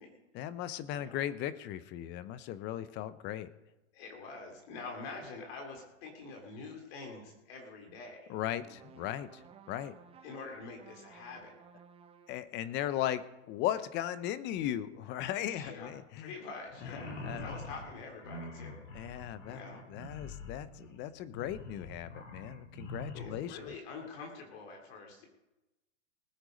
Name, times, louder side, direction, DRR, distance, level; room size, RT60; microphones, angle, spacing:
voice 1, 0.3-3.5 8.3-9.4 9.7-9.9 12.3-16.3 16.8-17.5 18.9-19.6 19.9-23.7, left 12 dB, 30° left, 15 dB, 0.7 m, -37 dB
voice 2, 0.9-1.3 3.9-8.4 10.2-11.5 15.4-18.8 19.5-19.8 23.1-25.3, left 4 dB, 50° left, 2 dB, 3.1 m, -46 dB
sound 1, 8.6-12.6, right 7 dB, 15° right, 0.8 m, -57 dB
sound 2, 16.7-23.5, left 2 dB, 75° left, 3.7 m, -45 dB
20.0 x 8.0 x 5.2 m, 1.0 s
hypercardioid pair, 130°, 37 cm